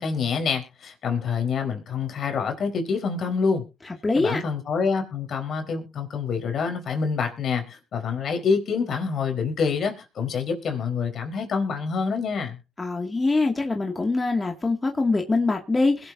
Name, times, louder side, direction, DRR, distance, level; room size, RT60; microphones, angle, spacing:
voice 1, 0.0-3.6 4.1-12.6, left 5 dB, 60° left, 4.3 m, -26 dB
voice 2, 4.0-4.4 12.8-16.1, left 3 dB, 25° left, 2.2 m, -23 dB
21.5 x 8.0 x 2.7 m
cardioid pair, 90°, 0 cm